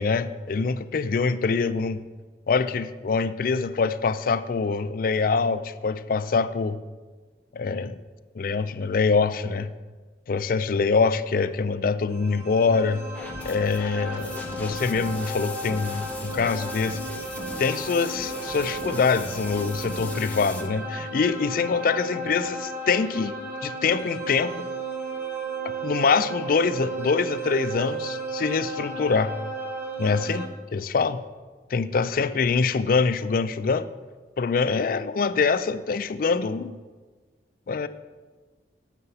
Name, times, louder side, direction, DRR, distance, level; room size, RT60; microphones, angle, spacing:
voice 1, 0.0-2.0 2.5-6.8 7.5-8.0 8.4-9.7 10.3-13.0 13.4-17.0 17.6-23.3 23.6-24.7 25.6-29.3 30.0-31.2 31.7-33.9 34.4-36.8 37.7-37.9, left 4 dB, 50° left, 12 dB, 0.4 m, -24 dB
sound 1, 12.1-30.5, right 2 dB, 10° right, 1.2 m, -34 dB
sound 2, 13.1-20.7, left 1 dB, 10° left, 0.7 m, -39 dB
8.0 x 6.7 x 5.6 m, 1.3 s
head